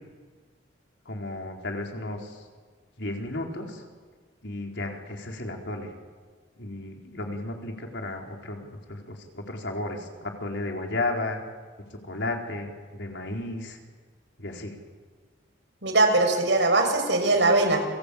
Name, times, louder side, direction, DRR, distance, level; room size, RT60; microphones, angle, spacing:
voice 1, 1.1-2.4 3.0-3.8 4.4-5.9 6.6-11.4 12.0-13.8 14.4-14.7, left 2 dB, 75° left, 1 dB, 4.6 m, -33 dB
voice 2, 15.8-17.9, right 2 dB, 75° right, 5 dB, 6.4 m, -21 dB
29.5 x 23.0 x 8.7 m, 1.5 s
head